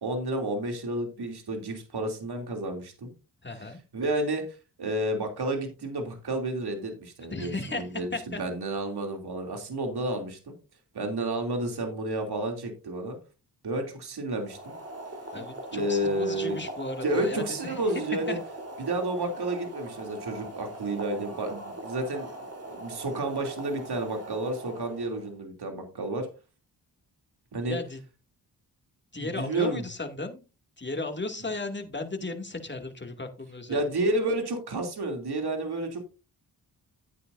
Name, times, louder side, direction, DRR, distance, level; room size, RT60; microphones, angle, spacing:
voice 1, 0.0-3.1 3.9-10.5 10.9-13.2 13.6-14.7 15.7-16.6 17.0-18.4 18.8-22.3 22.7-26.3 27.5-27.8 29.2-29.8 33.7-36.0, right 1 dB, 65° right, 4 dB, 3.0 m, -31 dB
voice 2, 3.4-3.8 7.3-7.8 8.1-8.4 15.3-17.8 18.3-18.4 27.6-28.0 29.1-30.4 30.8-33.8, left 2 dB, 25° left, 4 dB, 2.4 m, -35 dB
Boiling, 14.3-25.3, right 1 dB, 35° right, 3.7 m, -41 dB
12.5 x 9.2 x 2.6 m, 0.30 s
cardioid pair, 55°, 41 cm